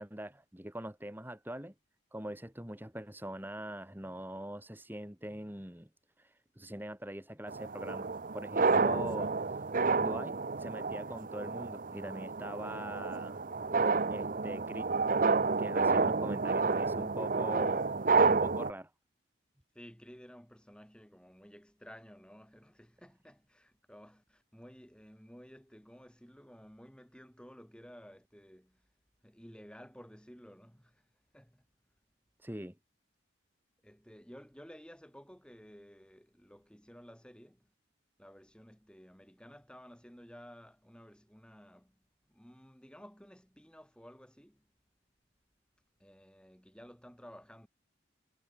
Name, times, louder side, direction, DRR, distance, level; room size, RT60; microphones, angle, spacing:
voice 1, 0.0-1.7 2.1-5.9 6.2-13.5 14.1-14.9 15.6-18.9 32.4-32.8, right 1 dB, 10° right, 2.5 m, -43 dB
sound 1, 7.5-18.7, right 4 dB, 45° right, 0.7 m, -30 dB
voice 2, 19.7-28.9 29.2-31.1 31.3-31.7 33.8-37.7 38.2-42.0 42.3-44.7 46.0-47.7, equal, 5° left, 7.4 m, -54 dB
head